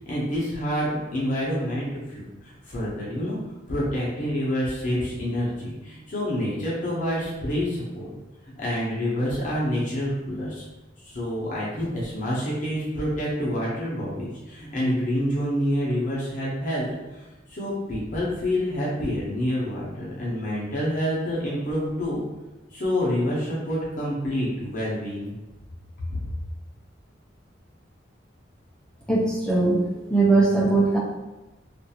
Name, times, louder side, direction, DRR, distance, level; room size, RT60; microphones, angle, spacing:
voice 1, 0.1-3.4 3.7-8.1 8.6-10.6 11.1-22.2 22.7-25.3, equal, 40° left, -7 dB, 0.7 m, -27 dB
voice 2, 29.1-29.8 30.1-31.0, right 3 dB, 5° left, -4 dB, 0.4 m, -20 dB
2.5 x 2.3 x 2.8 m, 1.1 s
head